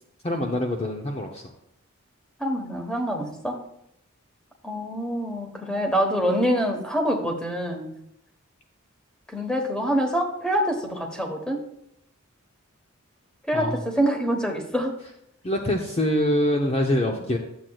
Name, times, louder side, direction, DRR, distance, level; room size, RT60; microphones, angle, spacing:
voice 1, 0.2-1.5 13.5-13.8 15.4-17.4, left 1 dB, 30° left, 2 dB, 0.6 m, -24 dB
voice 2, 2.4-3.6 4.6-7.9 9.3-11.6 13.5-14.9, equal, 5° left, 3 dB, 1.1 m, -25 dB
11.5 x 7.5 x 2.3 m, 0.77 s
head